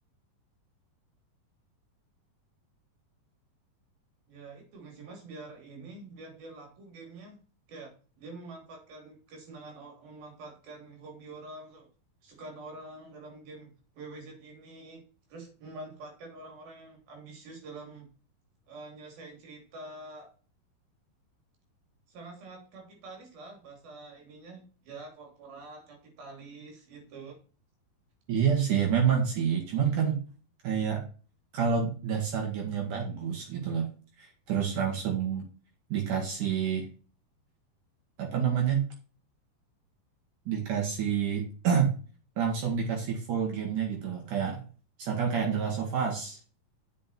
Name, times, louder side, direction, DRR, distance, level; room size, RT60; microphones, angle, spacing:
voice 1, 4.3-7.4 7.7-11.9 12.2-13.7 13.9-15.0 15.3-18.1 18.7-20.3 22.1-27.4, right 2 dB, 85° right, 2 dB, 5.1 m, -46 dB
voice 2, 28.3-30.2 30.6-31.0 31.5-33.9 34.2-35.5 35.9-36.9 38.2-38.9 40.5-41.9 42.4-44.6 45.0-46.4, right 7 dB, 60° right, 0 dB, 3.3 m, -28 dB
8.3 x 6.3 x 4.4 m, 0.37 s
omnidirectional pair, 4.1 m